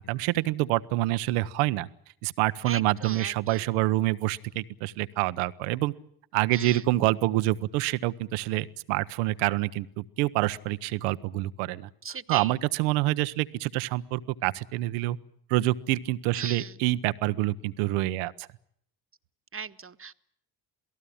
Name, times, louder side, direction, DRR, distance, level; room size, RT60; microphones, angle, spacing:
voice 1, 0.1-1.9 2.2-5.9 6.3-11.9 12.3-15.2 15.5-18.5, right 17 dB, 80° right, 15 dB, 1.0 m, -27 dB
voice 2, 2.6-3.6 6.5-6.8 12.0-12.5 16.3-16.7 19.5-20.1, right 6 dB, 25° right, 12 dB, 1.4 m, -37 dB
28.0 x 18.0 x 8.7 m, 0.68 s
hypercardioid pair, 50°, 49 cm